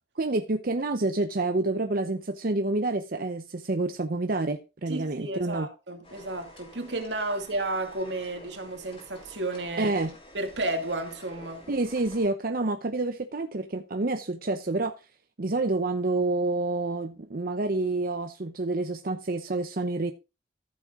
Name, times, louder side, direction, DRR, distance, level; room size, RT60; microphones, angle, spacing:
voice 1, 0.2-5.7 9.8-10.1 11.7-14.9 15.4-20.1, right 2 dB, 55° right, 0.8 m, -28 dB
voice 2, 4.9-9.9 10.3-11.7, right 2 dB, 80° right, 2.3 m, -32 dB
sound 1, 6.0-12.3, left 1 dB, 35° left, 4.1 m, -50 dB
14.0 x 7.4 x 3.7 m
head